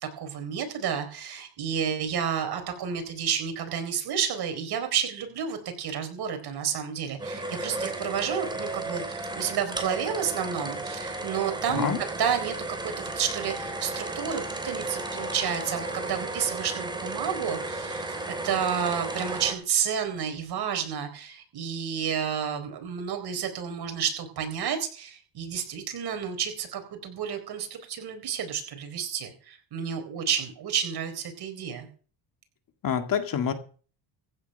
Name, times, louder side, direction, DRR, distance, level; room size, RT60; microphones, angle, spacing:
voice 1, 0.0-12.6 12.8-18.1 18.4-31.9, right 8 dB, 55° right, 6 dB, 4.2 m, -30 dB
sound 1, 7.2-19.5, right 2 dB, 10° right, 3.2 m, -34 dB
voice 2, 11.7-12.0 32.8-33.5, left 7 dB, 45° left, 7 dB, 2.1 m, -26 dB
15.5 x 9.1 x 5.6 m, 0.41 s
cardioid pair, 120°, 46 cm